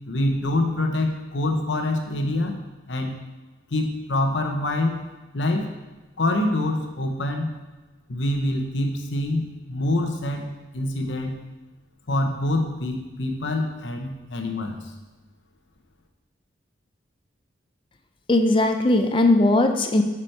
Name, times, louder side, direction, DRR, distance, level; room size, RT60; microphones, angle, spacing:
voice 1, 0.1-2.6 2.9-3.2 3.7-5.0 5.3-5.7 6.2-7.5 8.1-11.4 12.1-14.8, left 1 dB, 75° left, 4 dB, 1.0 m, -25 dB
voice 2, 18.3-20.0, left 2 dB, 25° left, 5 dB, 0.5 m, -19 dB
7.9 x 6.0 x 4.5 m, 1.2 s
head